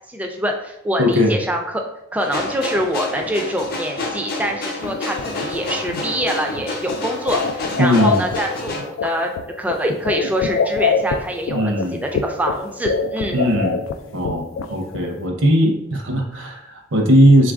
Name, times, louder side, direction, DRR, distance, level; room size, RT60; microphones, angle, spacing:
voice 1, 0.1-1.8 2.1-13.5, equal, 10° right, 3 dB, 0.3 m, -25 dB
voice 2, 1.0-1.3 7.8-8.2 11.5-12.0 13.3-13.8 14.1-17.5, equal, 70° right, 3 dB, 0.6 m, -18 dB
sound 1, 2.2-8.8, left 2 dB, 50° left, 0.6 m, -29 dB
sound 2, 4.8-15.3, left 5 dB, 90° left, 0.3 m, -25 dB
3.8 x 2.4 x 3.5 m, 0.82 s
head